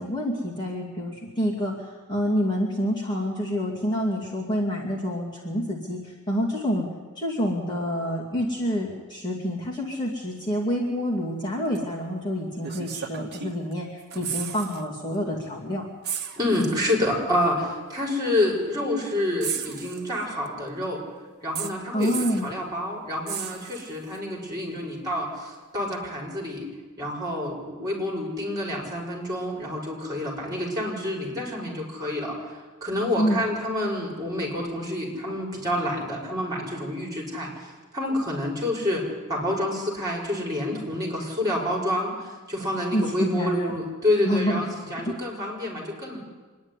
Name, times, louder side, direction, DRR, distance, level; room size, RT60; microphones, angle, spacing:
voice 1, 0.0-1.7 2.1-6.9 7.2-15.9 21.9-22.5 33.2-33.4 42.9-43.7 44.2-45.2, equal, 20° left, -4 dB, 2.4 m, -27 dB
sound 1, 11.7-11.9 12.6-13.7 14.0-14.8 15.1-15.3 16.0-16.9 17.9-18.0 19.4-20.5 21.5-22.5 23.3-24.2 25.9-26.0, right 8 dB, 50° right, 1.3 m, -34 dB
voice 2, 16.4-21.0 21.4-26.7 27.0-46.2, left 1 dB, 15° right, -1 dB, 5.3 m, -28 dB
25.0 x 10.5 x 9.8 m, 1.3 s
head